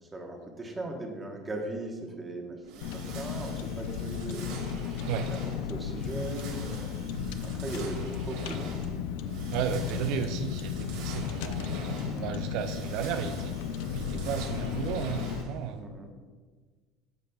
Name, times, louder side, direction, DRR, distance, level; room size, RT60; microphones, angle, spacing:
voice 1, 0.1-5.0 5.3-6.9 7.4-8.7 12.1-12.4 15.8-16.1, right 1 dB, 15° right, 2 dB, 1.0 m, -39 dB
sound 1, 2.6-15.8, right 4 dB, 80° right, 1.8 m, -46 dB
Car, 2.8-15.4, left 7 dB, 80° left, 0.4 m, -35 dB
voice 2, 9.5-13.6 13.9-15.9, right 7 dB, 60° right, 7 dB, 0.4 m, -34 dB
13.0 x 5.1 x 2.3 m, 1.4 s
cardioid pair, 160°, 0 cm